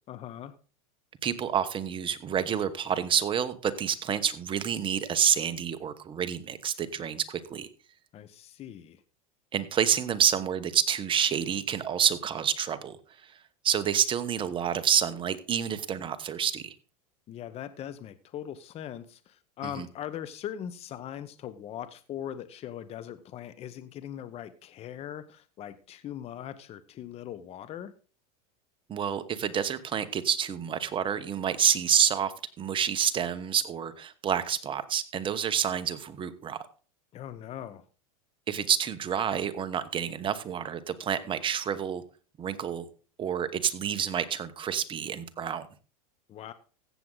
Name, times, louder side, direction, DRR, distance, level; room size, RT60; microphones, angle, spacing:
voice 1, 0.1-0.5 8.1-9.0 17.3-27.9 37.1-37.8 46.3-46.5, left 10 dB, 35° left, 13 dB, 0.9 m, -40 dB
voice 2, 1.2-7.7 9.5-13.0 13.6-16.7 19.8-19.9 28.9-36.6 38.5-42.0 42.4-42.8 43.2-45.7, right 8 dB, 25° right, 12 dB, 1.1 m, -28 dB
15.0 x 7.7 x 3.9 m, 0.37 s
supercardioid pair, 120°, 19 cm